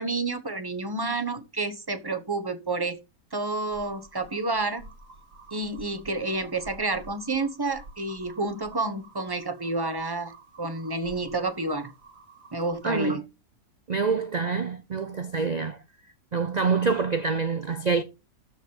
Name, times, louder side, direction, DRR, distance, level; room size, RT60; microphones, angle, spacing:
voice 1, 0.0-3.0 3.3-4.9 5.5-10.3 10.6-11.9 12.5-13.2, right 2 dB, 15° right, 0.9 m, -29 dB
sound 1, 3.7-13.1, right 3 dB, 55° right, 2.3 m, -50 dB
voice 2, 12.8-13.2 13.9-15.8 16.3-18.0, right 5 dB, 85° right, 0.3 m, -26 dB
12.5 x 4.7 x 5.5 m
omnidirectional pair, 1.7 m